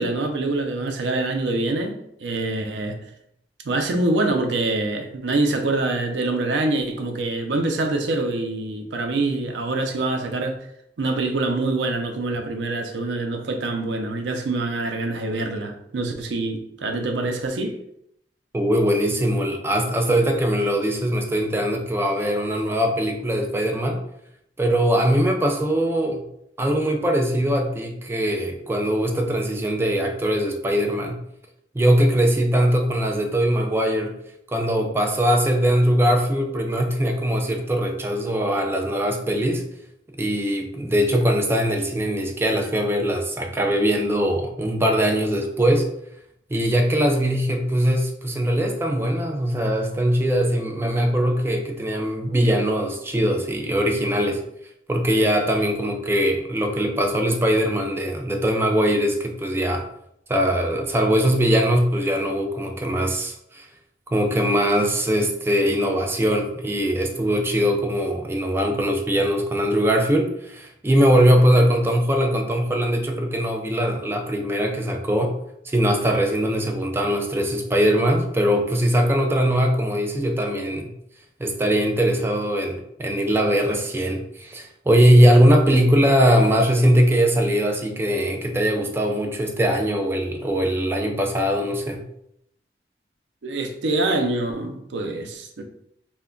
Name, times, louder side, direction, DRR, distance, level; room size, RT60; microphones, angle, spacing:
voice 1, 0.0-3.0 3.6-10.6 11.0-17.8 93.4-95.6, right 2 dB, 90° right, 0.5 m, -25 dB
voice 2, 18.5-24.0 24.6-26.2 26.6-31.2 31.7-34.2 34.5-39.7 40.2-45.9 46.5-54.4 54.9-59.9 60.3-63.7 64.1-75.4 75.6-80.9 81.4-92.0, equal, 15° right, 0.3 m, -21 dB
2.2 x 2.1 x 3.6 m
head